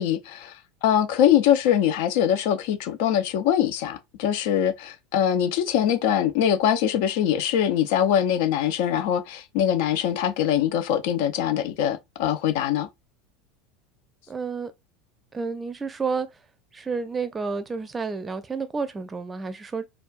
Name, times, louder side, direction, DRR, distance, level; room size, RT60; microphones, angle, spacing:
voice 1, 0.0-12.9, left 10 dB, 60° left, 0.5 m, -23 dB
voice 2, 14.3-14.7 15.3-16.3 16.7-19.9, right 4 dB, 20° right, 0.5 m, -30 dB
4.3 x 2.3 x 2.3 m
figure-of-eight pair, 75°, 0 cm